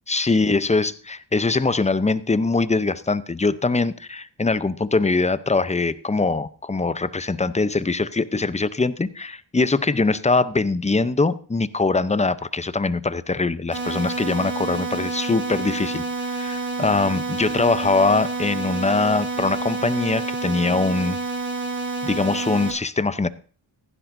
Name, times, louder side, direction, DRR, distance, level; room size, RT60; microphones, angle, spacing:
voice 1, 0.1-21.2 22.0-23.3, left 3 dB, 15° left, 15 dB, 0.7 m, -22 dB
sound 1, 13.7-22.7, right 3 dB, 25° right, 5.8 m, -28 dB
15.5 x 10.5 x 2.7 m, 0.40 s
cardioid pair, 45°, 47 cm